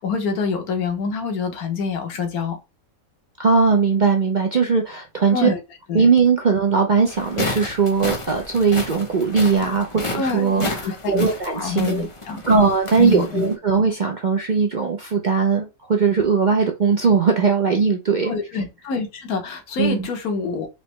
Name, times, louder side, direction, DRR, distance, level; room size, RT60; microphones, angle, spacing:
voice 1, 0.0-2.6 5.3-5.6 5.9-6.1 10.1-11.3 11.5-12.4 13.0-13.4 18.2-20.7, left 5 dB, 85° left, 1.5 m, -26 dB
voice 2, 3.4-5.5 5.9-12.1 12.5-18.3 19.8-20.1, right 5 dB, 50° right, 0.5 m, -19 dB
sound 1, 7.1-13.5, left 2 dB, 30° left, 0.6 m, -32 dB
4.1 x 3.0 x 3.2 m
omnidirectional pair, 1.5 m